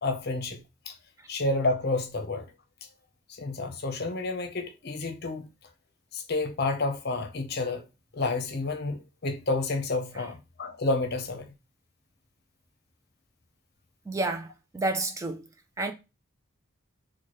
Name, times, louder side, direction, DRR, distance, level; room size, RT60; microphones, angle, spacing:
voice 1, 0.0-0.6 0.9-1.0 1.3-2.5 3.3-5.5 6.1-7.8 8.1-11.5, left 2 dB, 55° left, 0.7 m, -30 dB
voice 2, 14.1-15.5 15.8-15.9, right 2 dB, 15° right, 0.3 m, -30 dB
4.5 x 2.2 x 3.0 m
head